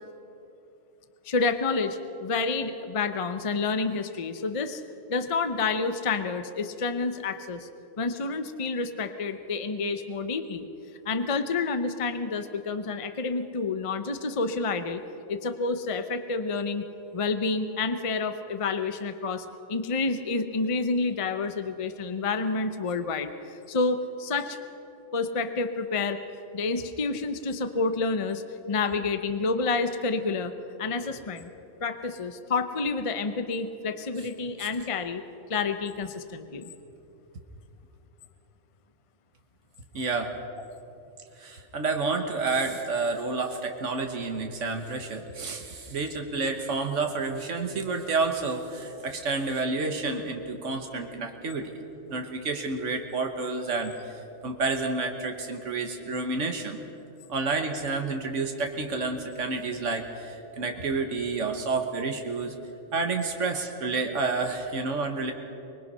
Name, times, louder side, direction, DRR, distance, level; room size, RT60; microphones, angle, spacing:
voice 1, 1.3-4.8 5.1-7.7 8.0-10.7 11.1-15.0 15.3-16.8 17.1-23.3 23.7-24.6 25.1-26.2 26.5-28.4 28.7-30.5 30.8-31.5 31.8-35.2 35.5-36.7, left 4 dB, 30° left, 9 dB, 0.7 m, -29 dB
voice 2, 39.9-40.3 41.4-51.7 52.1-53.9 54.4-56.8 57.3-62.5 62.9-65.3, right 3 dB, 90° right, 4 dB, 1.6 m, -29 dB
25.0 x 21.0 x 5.6 m, 2.9 s
omnidirectional pair, 1.2 m